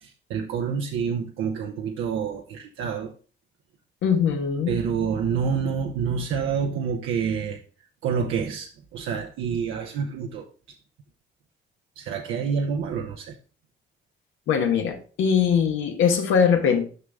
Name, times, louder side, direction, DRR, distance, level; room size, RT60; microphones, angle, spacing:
voice 1, 0.0-3.1 4.7-7.6 8.0-10.5 12.0-13.4, right 6 dB, 90° right, 0.8 m, -28 dB
voice 2, 4.0-4.8 14.5-16.9, left 7 dB, 90° left, 1.3 m, -21 dB
6.5 x 5.3 x 3.6 m
cardioid pair, 90°, 20 cm